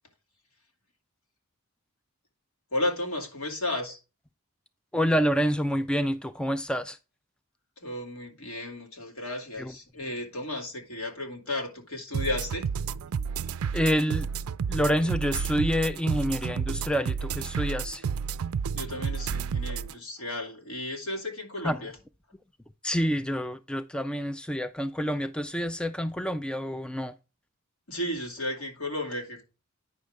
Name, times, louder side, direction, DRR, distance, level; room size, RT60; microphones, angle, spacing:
voice 1, 2.7-4.0 7.8-12.7 18.7-22.0 27.9-29.4, left 1 dB, 70° left, 2.5 m, -33 dB
voice 2, 4.9-7.0 9.6-9.7 13.7-14.3 14.7-18.0 21.6-21.8 22.8-27.1, equal, 5° left, 0.3 m, -27 dB
sound 1, 12.1-19.9, right 6 dB, 70° right, 0.4 m, -31 dB
9.4 x 6.3 x 3.5 m
head